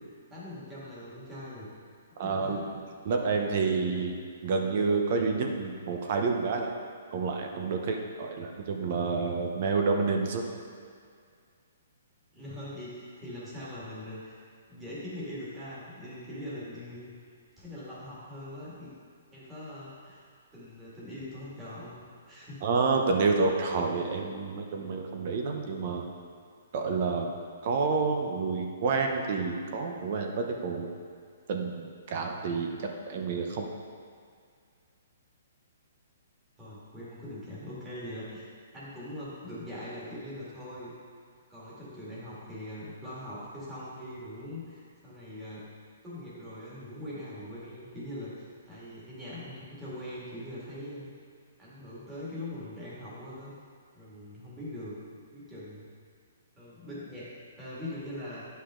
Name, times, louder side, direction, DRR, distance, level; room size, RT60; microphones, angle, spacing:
voice 1, 0.0-1.7 2.2-2.7 12.3-14.4 14.7-17.1 17.6-18.9 19.3-20.2 20.5-22.6 36.6-40.9 41.5-45.7 46.0-51.1 51.6-53.5 53.9-55.0 55.3-55.8 56.6-57.3 57.6-58.4, left 1 dB, 10° right, -9 dB, 2.1 m, -42 dB
voice 2, 2.2-2.7 3.0-6.7 7.1-10.4 22.6-26.0 26.7-27.3 27.6-30.9 31.5-32.7 33.1-33.7, right 4 dB, 45° right, 2 dB, 0.8 m, -29 dB
9.9 x 5.6 x 3.8 m, 2.2 s
hypercardioid pair, 160°, 0 cm